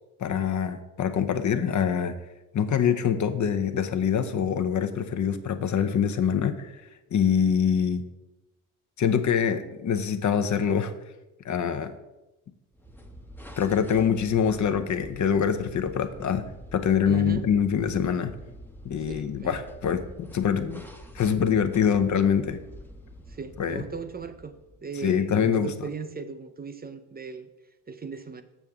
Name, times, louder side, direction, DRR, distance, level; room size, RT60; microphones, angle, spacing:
voice 1, 0.2-2.1 2.5-6.7 7.1-8.0 9.0-10.9 11.4-11.9 13.6-16.4 16.7-18.3 18.8-20.8 21.1-22.6 23.6-23.8 25.0-25.7, left 7 dB, 40° left, 10 dB, 0.8 m, -24 dB
sound 1, 12.7-24.9, equal, 5° left, 0.8 m, -46 dB
voice 2, 17.1-17.4 19.1-19.6 23.3-24.5 24.8-27.5 27.9-28.4, right 5 dB, 20° right, 9 dB, 0.5 m, -37 dB
7.1 x 6.7 x 3.6 m, 1.0 s
hypercardioid pair, 60°, 45 cm